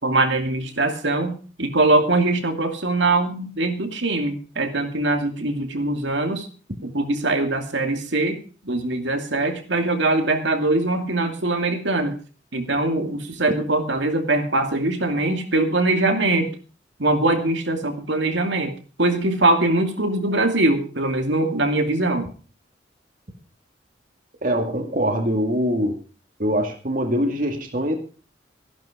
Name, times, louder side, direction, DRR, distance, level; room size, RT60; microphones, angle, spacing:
voice 1, 0.0-6.5 6.8-12.2 12.5-16.5 17.0-18.7 19.0-22.3, right 2 dB, 75° right, 5 dB, 2.6 m, -22 dB
voice 2, 24.4-26.0 26.4-27.9, equal, 45° right, 4 dB, 2.3 m, -23 dB
15.0 x 11.5 x 5.0 m, 0.38 s
head